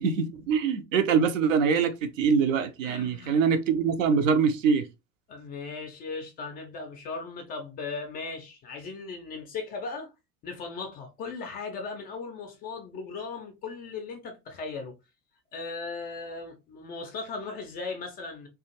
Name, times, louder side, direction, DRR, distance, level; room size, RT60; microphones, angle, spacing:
voice 1, 0.0-4.9, right 6 dB, 60° right, 0.6 m, -24 dB
voice 2, 2.8-3.5 5.3-10.1 10.4-14.9 15.5-18.5, left 4 dB, 20° left, 0.4 m, -37 dB
2.4 x 2.3 x 2.8 m
figure-of-eight pair, 70°, 45 cm